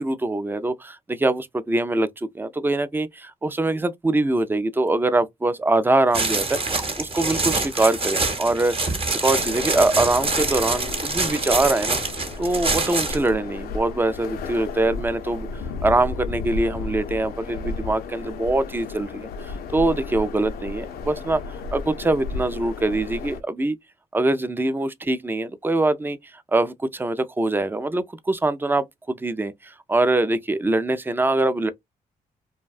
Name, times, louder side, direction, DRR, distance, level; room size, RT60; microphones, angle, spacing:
voice 1, 0.0-8.9 9.2-12.0 12.4-15.5 15.8-19.3 19.7-23.8 24.1-26.2 26.5-31.7, right 2 dB, 15° right, 0.4 m, -23 dB
sound 1, 6.1-13.3, right 3 dB, 35° right, 0.9 m, -25 dB
sound 2, 9.3-23.4, left 4 dB, 80° left, 0.4 m, -33 dB
2.5 x 2.2 x 2.3 m
cardioid pair, 70°, 16 cm